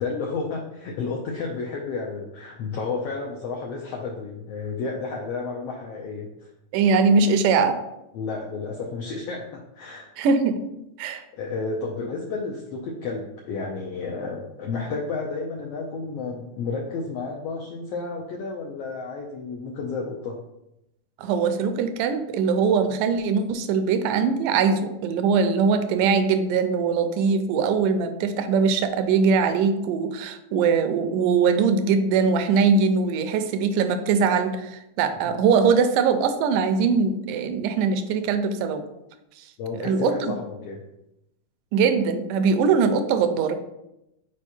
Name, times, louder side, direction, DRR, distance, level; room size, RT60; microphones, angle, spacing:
voice 1, 0.0-6.5 8.1-10.1 11.3-20.4 35.2-35.3 39.6-40.8, left 4 dB, 90° left, 0 dB, 1.3 m, -31 dB
voice 2, 6.7-7.8 10.2-10.6 11.0-11.2 21.2-38.9 39.4-39.5 39.8-40.2 41.7-43.6, right 5 dB, 85° right, 9 dB, 2.2 m, -21 dB
5.4 x 4.8 x 4.2 m, 0.86 s
omnidirectional pair, 3.7 m